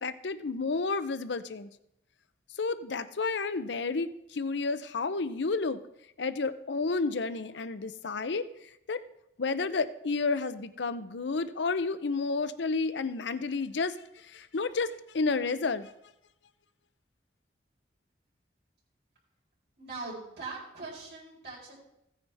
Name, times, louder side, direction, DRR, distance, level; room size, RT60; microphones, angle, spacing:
voice 1, 0.0-1.7 2.6-5.8 6.2-8.5 8.9-9.0 9.4-15.9, left 4 dB, 75° left, 12 dB, 0.6 m, -31 dB
voice 2, 19.8-21.7, right 3 dB, 65° right, -5 dB, 4.3 m, -41 dB
16.0 x 9.4 x 3.4 m, 0.82 s
head